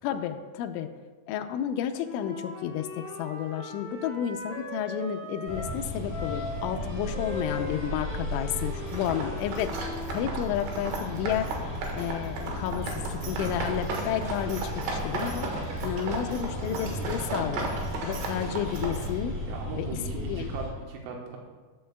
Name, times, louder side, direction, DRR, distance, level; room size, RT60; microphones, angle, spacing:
voice 1, 0.0-0.9 1.3-17.7 18.0-19.4 19.8-20.5, left 9 dB, 85° left, 6 dB, 2.8 m, -32 dB
Wind instrument woodwind instrument, 2.0-5.8 6.1-10.1, left 2 dB, 35° left, 3.8 m, -39 dB
sound 1, 5.5-20.7, left 1 dB, 35° right, 3.2 m, -35 dB
sound 2, 8.9-19.1, right 3 dB, 70° right, 3.4 m, -35 dB
voice 2, 19.5-21.4, right 4 dB, 90° right, 0 dB, 3.8 m, -38 dB
13.0 x 12.0 x 2.3 m, 1.4 s
omnidirectional pair, 5.9 m